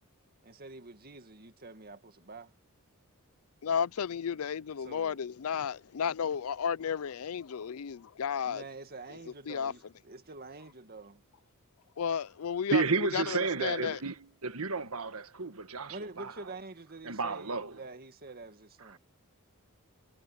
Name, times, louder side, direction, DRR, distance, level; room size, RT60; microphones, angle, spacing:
voice 1, 0.4-2.5 4.8-5.2 8.4-11.2 15.9-19.0, right 3 dB, 45° right, 2.0 m, -47 dB
voice 2, 3.6-8.6 9.5-9.7 12.0-14.0, left 7 dB, 70° left, 0.5 m, -33 dB
voice 3, 12.7-14.1 14.4-16.3 17.0-17.7, right 4 dB, 70° right, 1.5 m, -31 dB
head